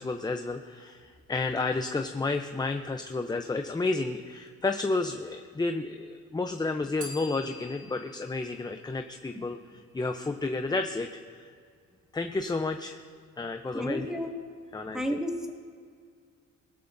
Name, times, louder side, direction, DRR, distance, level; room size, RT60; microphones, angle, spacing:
voice 1, 0.0-11.5 12.1-13.0 13.4-14.1 14.7-15.2, left 3 dB, 15° left, 6 dB, 0.7 m, -31 dB
Bell, 7.0-9.8, equal, 75° right, 2.5 m, -47 dB
voice 2, 13.7-14.3 14.9-15.5, equal, ahead, 0 dB, 2.2 m, -31 dB
20.5 x 13.0 x 2.7 m, 2.1 s
cardioid pair, 90°, 30 cm